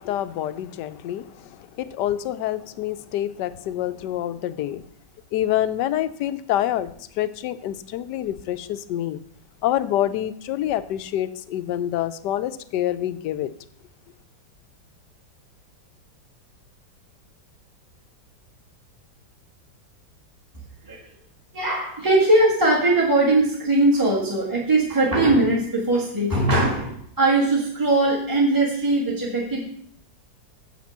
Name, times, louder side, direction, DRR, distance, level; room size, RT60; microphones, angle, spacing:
voice 1, 0.0-4.8 5.3-9.2 9.6-13.5, left 12 dB, 75° left, 1.1 m, -27 dB
voice 2, 21.5-29.6, right 2 dB, 10° right, 1.5 m, -20 dB
7.2 x 6.0 x 7.2 m
omnidirectional pair, 2.0 m